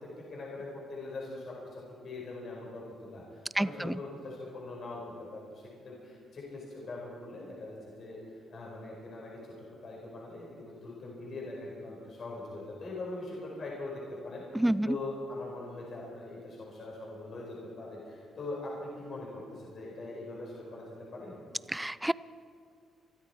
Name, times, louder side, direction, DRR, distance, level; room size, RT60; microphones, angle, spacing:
voice 1, 0.0-9.6 9.8-21.4, left 2 dB, 55° left, -4 dB, 4.8 m, -42 dB
voice 2, 3.6-4.0 14.5-15.0 21.7-22.1, right 1 dB, 10° right, 18 dB, 0.4 m, -28 dB
24.0 x 13.0 x 4.5 m, 2.3 s
cardioid pair, 90°, 0 cm